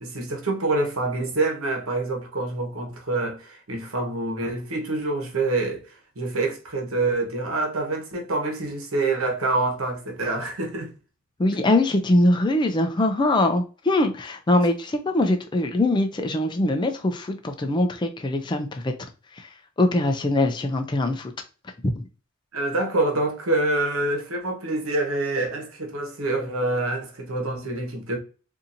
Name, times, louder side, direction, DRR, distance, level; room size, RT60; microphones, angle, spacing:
voice 1, 0.0-10.9 22.5-28.2, right 2 dB, 90° right, 1.1 m, -26 dB
voice 2, 11.4-18.9 19.4-19.5 19.8-21.3 21.8-22.0, left 1 dB, 20° left, 0.4 m, -22 dB
4.1 x 2.7 x 2.5 m
head